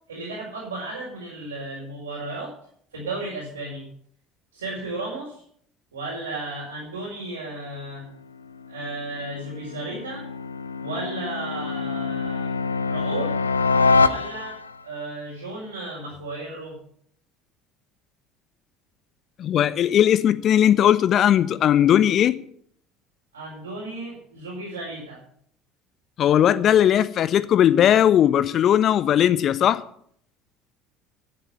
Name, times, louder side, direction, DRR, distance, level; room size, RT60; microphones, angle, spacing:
voice 1, 0.1-2.5 2.9-3.8 4.5-5.4 5.9-8.0 8.7-10.3 10.8-12.5 12.9-13.4 14.0-14.6 14.8-16.8 23.3-25.2, right 2 dB, 85° right, 4.8 m, -34 dB
sound 1, 8.4-14.8, left 4 dB, 90° left, 0.5 m, -25 dB
voice 2, 19.4-22.4 26.2-29.8, left 10 dB, 50° left, 1.0 m, -18 dB
11.5 x 8.8 x 9.1 m
figure-of-eight pair, 65°, 0 cm